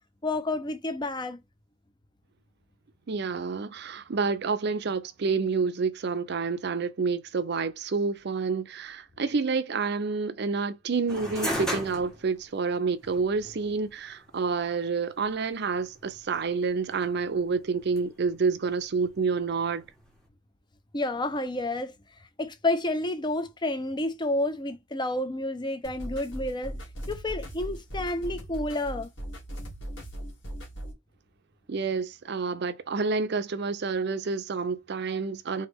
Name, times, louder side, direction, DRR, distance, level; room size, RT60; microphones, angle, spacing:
voice 1, 0.2-1.4 20.9-21.9 22.4-26.7 27.1-29.1, left 2 dB, 25° left, 0.6 m, -30 dB
voice 2, 3.1-19.8 31.7-35.7, right 4 dB, 60° right, 0.5 m, -28 dB
sound 1, 11.1-20.3, equal, 5° left, 1.5 m, -39 dB
sound 2, 25.8-30.9, right 1 dB, 70° left, 2.2 m, -38 dB
3.9 x 3.2 x 3.4 m
head